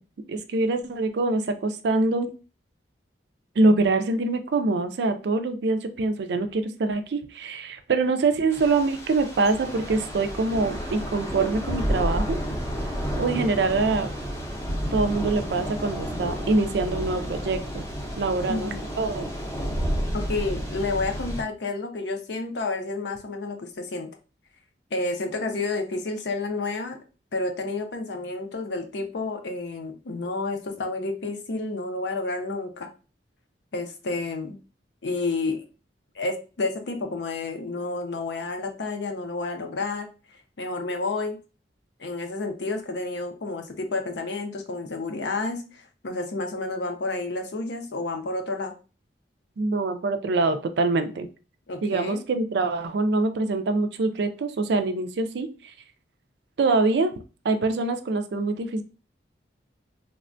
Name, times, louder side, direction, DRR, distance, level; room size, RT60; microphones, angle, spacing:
voice 1, 0.3-2.3 3.6-12.4 13.2-14.1 14.9-17.8 18.2-19.3 49.6-51.3 51.8-55.5 56.6-57.1 57.4-58.8, right 3 dB, 65° right, 8 dB, 0.4 m, -24 dB
Thunder / Rain, 8.5-21.4, equal, 15° left, 0.6 m, -31 dB
voice 2, 18.5-18.8 20.1-24.1 24.9-27.0 27.3-32.9 33.7-34.6 35.0-35.6 36.2-40.1 40.6-41.4 42.0-48.8 51.7-52.2, left 3 dB, 65° left, 5 dB, 0.5 m, -30 dB
3.3 x 2.1 x 2.5 m, 0.33 s
head